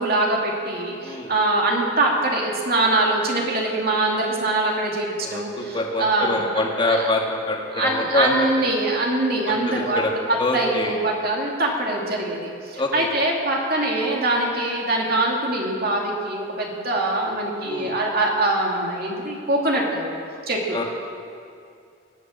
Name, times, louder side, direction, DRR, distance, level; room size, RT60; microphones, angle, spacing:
voice 1, 0.0-7.1 7.7-10.0 10.3-20.2 20.5-20.8, right 2 dB, 50° right, -1 dB, 2.4 m, -23 dB
voice 2, 5.2-8.3 9.5-10.1 10.4-10.9 12.8-13.1 17.6-18.0 20.7-20.8, left 2 dB, 25° left, -1 dB, 1.9 m, -25 dB
19.0 x 8.2 x 7.6 m, 2.4 s
head